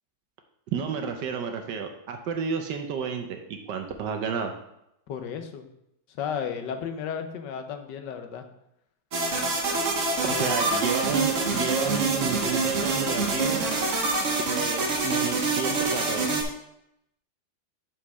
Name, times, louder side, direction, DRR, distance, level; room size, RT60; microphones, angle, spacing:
voice 1, 0.7-4.5 10.2-13.6 14.5-16.4, right 6 dB, 70° right, 5 dB, 1.3 m, -31 dB
voice 2, 5.1-5.7 6.2-8.5 10.2-10.6, left 7 dB, 70° left, 7 dB, 1.4 m, -33 dB
sound 1, 9.1-16.4, right 3 dB, 45° right, 1.3 m, -26 dB
5.8 x 4.9 x 5.5 m, 0.81 s
omnidirectional pair, 2.1 m